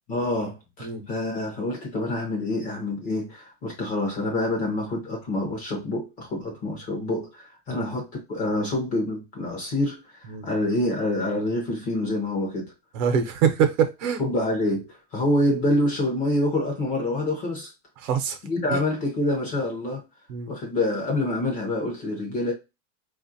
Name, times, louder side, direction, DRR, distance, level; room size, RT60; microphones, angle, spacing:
voice 1, 0.1-12.7 14.2-17.7 18.4-20.0 20.5-22.5, left 1 dB, 20° left, 0.6 m, -27 dB
voice 2, 12.9-14.2 18.0-18.4 18.7-18.8 20.3-20.5, right 7 dB, 60° right, 0.8 m, -24 dB
4.2 x 2.4 x 2.6 m
supercardioid pair, 175°, 42 cm